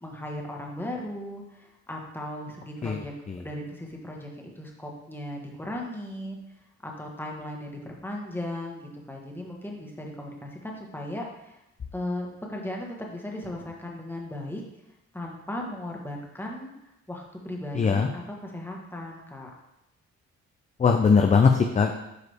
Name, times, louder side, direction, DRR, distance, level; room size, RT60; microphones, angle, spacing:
voice 1, 0.0-6.4 6.8-11.6 11.9-14.6 15.1-19.5, left 1 dB, 5° left, 0 dB, 1.4 m, -37 dB
voice 2, 17.8-18.1 20.8-21.9, left 5 dB, 25° left, 5 dB, 0.5 m, -20 dB
8.1 x 4.8 x 3.4 m, 0.87 s
cardioid pair, 90°, 30 cm